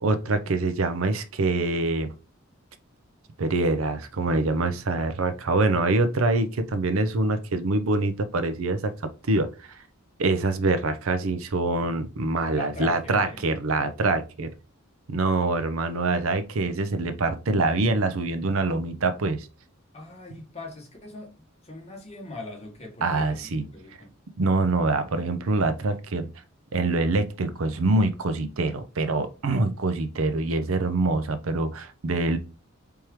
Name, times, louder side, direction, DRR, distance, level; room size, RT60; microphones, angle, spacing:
voice 1, 0.0-2.1 3.4-9.8 10.2-14.5 15.1-19.5 23.0-23.6 24.4-26.3 26.7-32.4, right 2 dB, 85° right, 0.6 m, -25 dB
voice 2, 12.5-13.5 19.9-24.1, left 2 dB, 30° left, 1.4 m, -40 dB
4.5 x 3.5 x 3.1 m
head